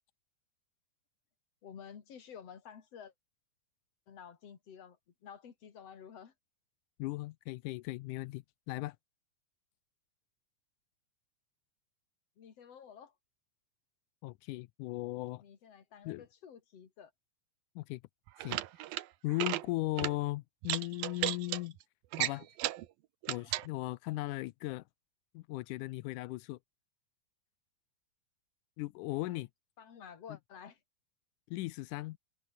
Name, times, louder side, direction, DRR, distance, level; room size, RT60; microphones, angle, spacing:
voice 1, 1.6-3.1 4.1-6.3 12.4-13.1 15.4-17.1 29.2-29.4 29.8-30.8, left 7 dB, 45° left, 3.3 m, -51 dB
voice 2, 7.0-9.0 14.2-15.4 16.1-16.2 17.8-18.0 18.4-18.6 19.2-21.8 22.2-22.5 23.3-24.8 25.3-26.6 28.8-29.5 31.5-32.2, left 19 dB, 80° left, 1.9 m, -37 dB
sound 1, 18.3-19.0 19.3-19.6 20.0-20.1 20.6-21.6 22.1-22.9 23.2-23.7, right 15 dB, 90° right, 2.8 m, -34 dB
omnidirectional pair, 4.0 m